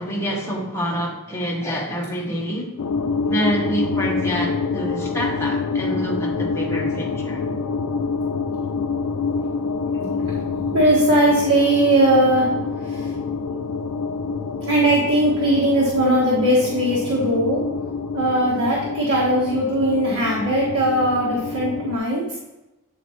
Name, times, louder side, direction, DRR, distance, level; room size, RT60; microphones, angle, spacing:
voice 1, 0.0-2.7 3.2-7.4, equal, 10° left, -3 dB, 1.1 m, -27 dB
sound 1, 2.8-22.0, left 4 dB, 90° left, 0.4 m, -26 dB
voice 2, 10.2-12.5 12.8-13.1 14.7-17.6 18.1-22.2, right 1 dB, 80° right, -4 dB, 1.2 m, -19 dB
8.4 x 3.9 x 3.1 m, 0.95 s
head